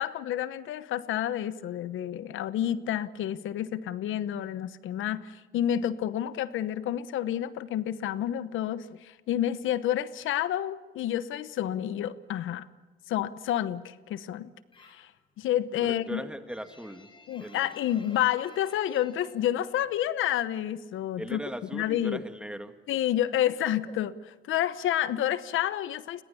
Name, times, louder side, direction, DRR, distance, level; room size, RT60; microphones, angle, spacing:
voice 1, 0.0-12.6 13.1-14.5 14.8-15.1 15.4-16.2 17.3-21.4 21.7-22.2 22.9-26.2, left 11 dB, 80° left, 15 dB, 1.0 m, -29 dB
sound 1, 14.7-15.2 15.5-20.4 20.6-21.7 22.0-24.8, left 3 dB, 25° left, 5.3 m, -55 dB
voice 2, 15.8-17.1 17.4-17.7 21.2-22.8, equal, 5° right, 8 dB, 2.2 m, -39 dB
29.5 x 22.0 x 7.1 m, 1.3 s
cardioid pair, 90°, 20 cm